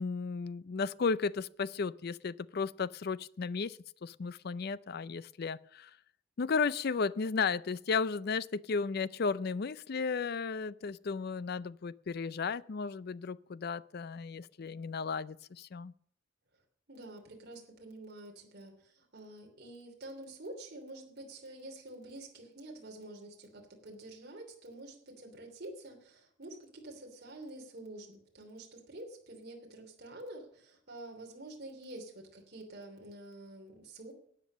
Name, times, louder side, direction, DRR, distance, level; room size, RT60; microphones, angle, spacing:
voice 1, 0.0-5.9 6.4-15.9, left 5 dB, 50° left, 0.4 m, -34 dB
voice 2, 16.9-34.1, right 1 dB, 50° right, 3.1 m, -48 dB
12.5 x 8.8 x 6.2 m
head